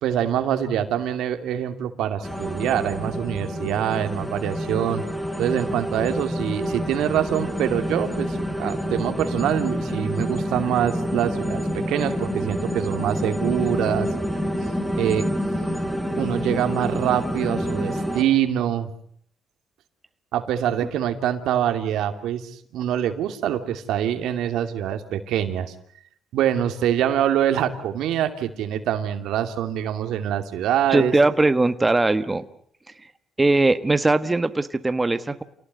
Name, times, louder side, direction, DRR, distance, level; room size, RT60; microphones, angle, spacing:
voice 1, 0.0-5.0 5.4-14.1 15.0-15.3 16.2-18.9 20.3-25.7 26.3-31.1, right 10 dB, 85° right, 8 dB, 2.7 m, -25 dB
sound 1, 2.2-18.2, equal, 5° left, 3.9 m, -28 dB
voice 2, 30.9-32.4 33.4-35.4, right 2 dB, 20° right, 11 dB, 1.4 m, -20 dB
28.5 x 18.5 x 9.4 m, 0.65 s
cardioid pair, 90°, 0 cm